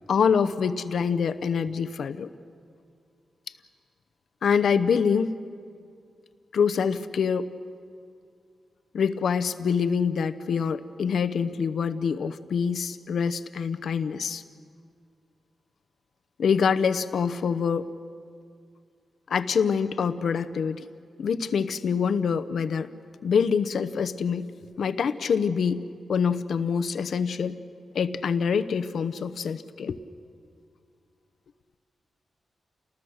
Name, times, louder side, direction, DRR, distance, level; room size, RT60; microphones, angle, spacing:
voice 1, 0.1-2.3 4.4-5.4 6.5-7.5 8.9-14.4 16.4-17.9 19.3-20.9 21.2-22.9 23.2-24.5 24.8-25.8 26.1-27.6 27.9-30.0, left 6 dB, 80° left, 12 dB, 0.8 m, -25 dB
29.5 x 19.5 x 6.4 m, 2.2 s
cardioid pair, 70°, 0 cm